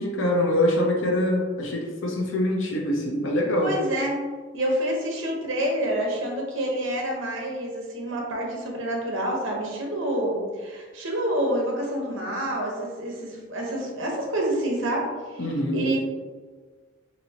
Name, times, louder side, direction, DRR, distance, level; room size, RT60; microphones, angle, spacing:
voice 1, 0.0-3.7 15.4-15.8, left 1 dB, 70° left, 0 dB, 0.7 m, -24 dB
voice 2, 3.6-4.3 4.5-15.4 15.7-16.0, right 1 dB, 65° right, -1 dB, 0.9 m, -28 dB
4.3 x 2.7 x 2.8 m, 1.4 s
head